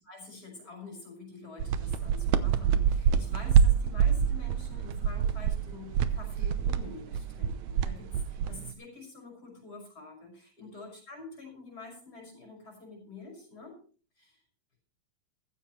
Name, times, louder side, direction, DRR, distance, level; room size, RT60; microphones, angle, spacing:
voice 1, 0.1-13.8 14.2-14.4, left 3 dB, 25° left, 1 dB, 6.2 m, -47 dB
sound 1, 1.6-8.7, right 7 dB, 75° right, 1.7 m, -26 dB
15.0 x 14.5 x 3.2 m, 0.39 s
omnidirectional pair, 4.1 m